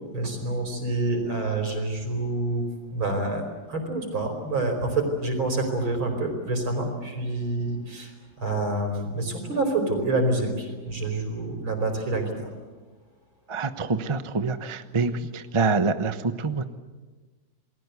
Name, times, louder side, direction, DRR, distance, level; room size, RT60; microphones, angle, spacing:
voice 1, 0.1-8.1 8.4-12.5, right 2 dB, 85° right, 5 dB, 5.6 m, -27 dB
voice 2, 13.5-16.6, right 4 dB, 25° right, 10 dB, 0.7 m, -26 dB
29.0 x 20.5 x 8.3 m, 1.3 s
omnidirectional pair, 2.2 m